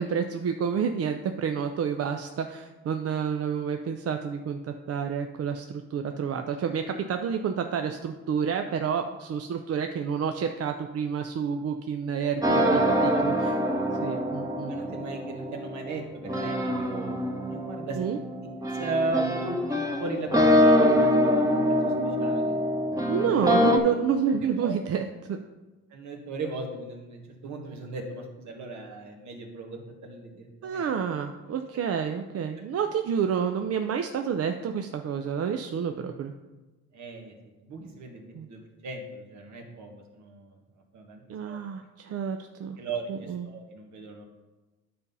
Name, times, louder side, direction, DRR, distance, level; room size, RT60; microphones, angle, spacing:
voice 1, 0.0-13.5 14.0-14.7 17.9-18.2 23.1-25.4 30.6-36.3 38.3-38.5 41.3-42.8 43.1-43.5, right 7 dB, 55° right, 6 dB, 0.6 m, -29 dB
sound 1, 12.4-23.8, equal, 10° right, 1.0 m, -24 dB
voice 2, 13.1-13.6 14.7-17.2 17.5-18.1 18.7-21.1 21.4-22.6 23.2-23.4 24.6-24.7 25.9-30.8 36.9-37.3 37.6-40.6 40.9-41.6 42.8-44.2, right 2 dB, 70° right, 2 dB, 1.6 m, -37 dB
9.7 x 4.2 x 5.4 m, 1.2 s
cardioid pair, 90°, 30 cm